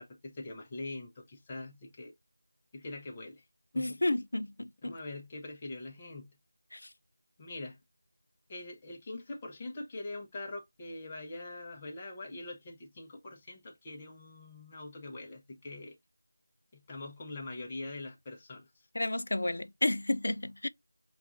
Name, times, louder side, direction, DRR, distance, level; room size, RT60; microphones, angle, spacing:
voice 1, 0.0-2.1 2.7-3.4 3.7-4.0 4.8-6.4 7.4-7.8 8.5-16.0 16.7-18.7, left 2 dB, 15° left, 0.6 m, -43 dB
voice 2, 3.8-4.9 6.7-6.8 19.0-20.7, left 1 dB, 65° left, 0.3 m, -31 dB
5.7 x 2.3 x 2.5 m
figure-of-eight pair, 175°, 0 cm